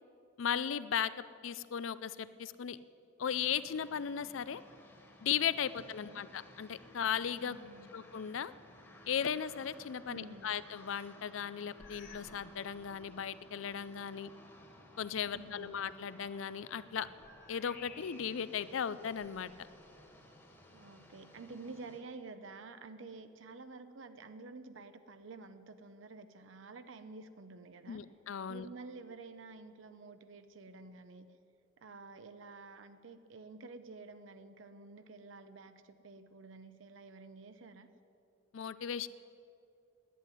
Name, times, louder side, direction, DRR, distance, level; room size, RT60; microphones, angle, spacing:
voice 1, 0.4-1.1 1.4-2.8 3.2-4.6 5.2-7.6 7.9-8.5 9.1-14.3 15.0-17.1 17.5-19.5 27.9-28.7 38.5-39.1, left 8 dB, 85° left, 16 dB, 0.5 m, -36 dB
sound 1, 3.3-22.0, left 1 dB, 15° left, 1.5 m, -58 dB
voice 2, 5.8-6.2 7.4-8.0 10.1-10.6 15.3-15.7 20.7-28.0 28.5-31.3 31.8-37.9, right 3 dB, 80° right, 10 dB, 0.7 m, -50 dB
sound 2, 11.8-12.4 12.7-13.1 13.7-13.8 16.2-18.5 19.1-20.1, left 5 dB, 45° left, 1.3 m, -56 dB
11.0 x 9.3 x 9.7 m, 2.5 s
head